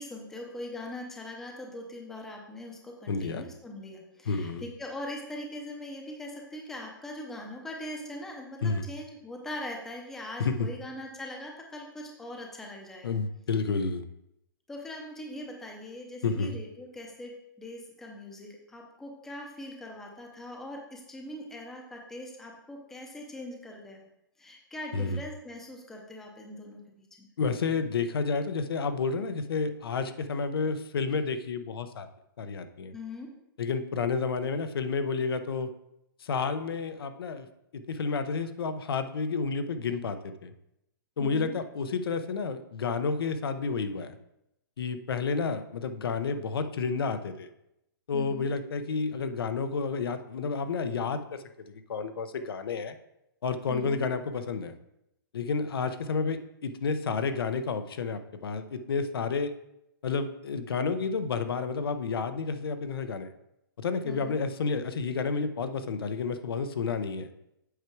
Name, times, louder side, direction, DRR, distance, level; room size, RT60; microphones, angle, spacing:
voice 1, 0.0-13.2 14.7-17.3 17.6-24.1 24.4-27.3 32.9-33.3 41.2-41.6 48.1-48.5 53.7-54.1 64.0-64.4, left 1 dB, 5° left, 0 dB, 0.6 m, -41 dB
voice 2, 3.1-3.4 4.3-4.6 8.6-8.8 10.4-10.7 13.0-14.0 16.2-16.6 24.9-25.2 27.4-32.1 32.4-32.9 33.6-35.7 36.2-37.5 37.7-40.5 41.2-44.1 44.8-47.5 48.1-51.4 51.7-52.9 53.4-54.8 55.3-59.5 60.0-63.3 63.8-67.3, left 4 dB, 90° left, 9 dB, 0.8 m, -30 dB
8.2 x 4.6 x 4.6 m, 0.83 s
hypercardioid pair, 175°, 12 cm